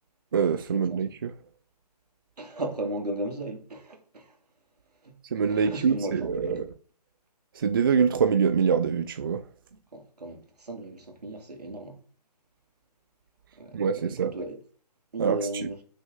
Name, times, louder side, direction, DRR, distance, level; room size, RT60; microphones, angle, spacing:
voice 1, 0.3-1.3 5.3-6.7 7.5-9.5 13.7-14.3 15.2-15.7, right 6 dB, 35° right, 0.4 m, -25 dB
voice 2, 2.4-4.4 5.0-5.2 5.5-6.7 9.9-12.0 13.6-14.6 15.1-15.8, right 1 dB, 70° right, 2.5 m, -36 dB
7.7 x 6.2 x 3.7 m
figure-of-eight pair, 155°, 21 cm